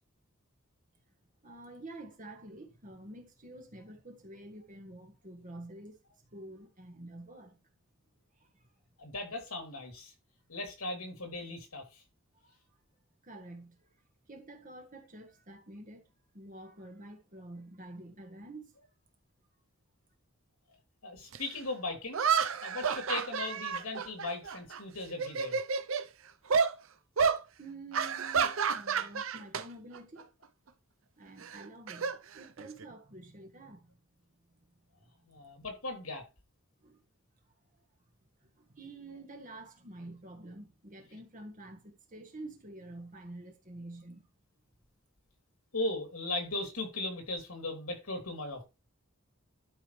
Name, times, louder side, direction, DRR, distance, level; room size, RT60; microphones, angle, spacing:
voice 1, 1.4-7.6 8.3-8.7 12.4-12.6 13.2-14.0 14.3-18.8 27.6-30.3 31.2-33.9 36.8-37.0 38.4-44.2, right 2 dB, 40° right, 1.6 m, -48 dB
voice 2, 9.0-10.1 10.5-12.0 21.0-22.2 22.6-25.6 35.3-36.2 45.7-48.6, left 2 dB, 85° left, 3.1 m, -38 dB
sound 1, 21.3-21.4 22.1-24.8 25.1-26.1 26.5-26.7 27.2-27.4 27.9-29.6 29.9-30.2 31.4-32.8, right 6 dB, 65° right, 0.7 m, -30 dB
12.0 x 5.2 x 3.3 m
head